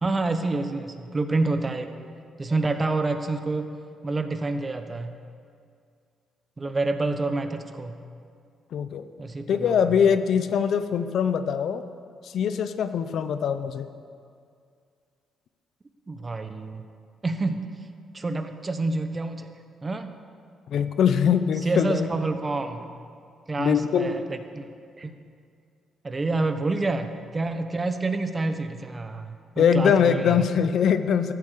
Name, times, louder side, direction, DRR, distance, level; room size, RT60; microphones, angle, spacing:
voice 1, 0.0-2.0 2.4-3.7 4.0-5.1 6.6-8.0 9.2-9.9 16.1-16.8 17.2-17.7 18.1-19.5 19.8-20.1 21.6-23.0 23.5-24.7 25.0-25.2 26.0-30.5, right 3 dB, 25° right, 8 dB, 1.0 m, -28 dB
voice 2, 8.7-9.1 9.5-11.8 12.2-13.9 20.7-22.1 23.6-24.2 29.6-31.3, left 7 dB, 65° left, 11 dB, 0.7 m, -22 dB
14.0 x 8.5 x 6.7 m, 2.3 s
cardioid pair, 90°, 0 cm